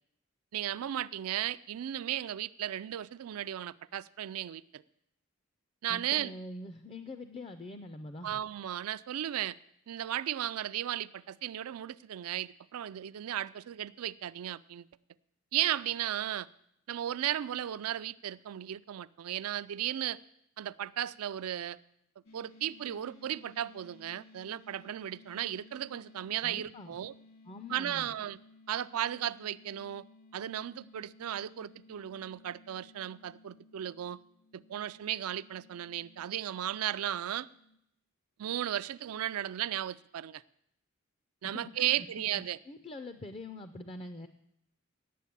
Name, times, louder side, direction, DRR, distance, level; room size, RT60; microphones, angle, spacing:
voice 1, 0.5-4.8 5.8-6.3 8.2-9.6 9.9-14.8 15.5-16.5 16.9-20.2 20.6-21.8 22.3-27.1 27.7-28.4 28.7-30.0 30.3-34.2 34.5-37.5 38.4-40.4 41.4-42.6, right 11 dB, 90° right, 15 dB, 0.4 m, -35 dB
voice 2, 5.9-8.4 26.4-27.0 27.5-28.1 41.5-42.1 42.3-44.3, left 2 dB, 25° left, 9 dB, 0.4 m, -44 dB
sound 1, 22.2-37.8, left 2 dB, 65° left, 2.1 m, -58 dB
9.3 x 7.3 x 8.4 m, 0.76 s
head